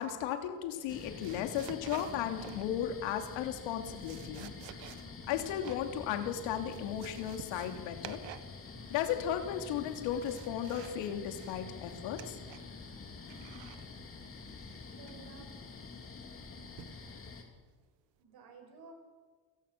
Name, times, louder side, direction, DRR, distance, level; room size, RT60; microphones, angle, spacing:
voice 1, 0.0-4.5 5.3-8.2 8.9-12.4, left 10 dB, 85° left, 5 dB, 3.0 m, -35 dB
sound 1, 0.7-2.9 3.7-5.9 6.2-6.3 6.6-8.6 8.8-9.3 9.8-11.0 11.3-12.8 13.3-13.9 15.1-15.4 16.8-17.1 17.6-17.8, right 13 dB, 70° right, 1.6 m, -51 dB
sound 2, 0.9-17.4, left 4 dB, 30° left, 3.7 m, -47 dB
voice 2, 14.9-15.7 18.2-18.9, right 5 dB, 55° right, 4 dB, 6.2 m, -54 dB
28.5 x 17.5 x 6.8 m, 1.4 s
cardioid pair, 135°, 45 cm